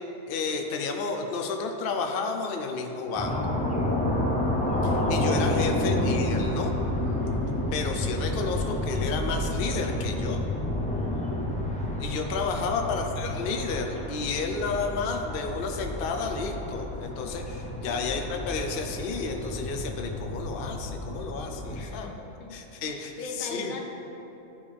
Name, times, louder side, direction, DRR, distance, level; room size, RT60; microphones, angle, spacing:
voice 1, 0.3-3.4 4.8-6.7 7.7-10.4 12.0-22.1 22.5-23.1 23.4-23.7, left 4 dB, 50° left, 3 dB, 0.7 m, -31 dB
sound 1, 3.2-21.8, left 1 dB, 5° left, 0.6 m, -30 dB
voice 2, 5.6-6.1 12.7-13.4 17.7-18.2 21.7-22.5 22.8-23.8, left 3 dB, 85° left, 2 dB, 1.5 m, -40 dB
13.5 x 5.3 x 3.4 m, 3.0 s
omnidirectional pair, 1.6 m